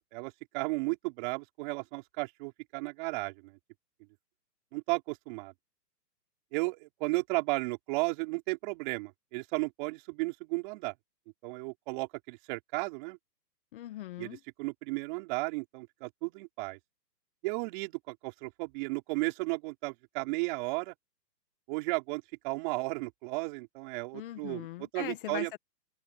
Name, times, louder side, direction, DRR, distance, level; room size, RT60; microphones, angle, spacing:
voice 1, 0.0-3.6 4.7-5.5 6.5-10.9 11.4-13.2 14.2-16.8 17.4-20.9 21.7-25.5, right 27 dB, 30° right, 5.0 m, -34 dB
voice 2, 13.7-14.4 24.1-25.6, left 14 dB, 30° left, 1.6 m, -40 dB
hypercardioid pair, 155°, 50 cm